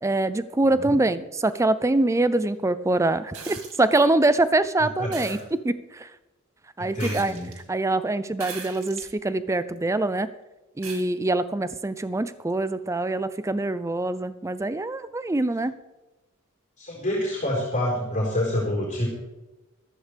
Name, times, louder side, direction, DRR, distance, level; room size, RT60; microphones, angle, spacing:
voice 1, 0.0-6.1 6.8-7.3 7.7-10.3 10.8-15.7, right 2 dB, 15° right, 14 dB, 0.4 m, -24 dB
sound 1, 3.3-3.8 5.1-5.4 7.0-7.6 8.4-9.1 9.8-9.9 10.8-11.0 12.5-12.6, right 5 dB, 75° right, 2.0 m, -39 dB
voice 2, 5.0-5.3 6.8-7.5 16.8-19.1, left 1 dB, 35° left, -4 dB, 4.2 m, -27 dB
14.5 x 13.5 x 3.4 m, 1.1 s
head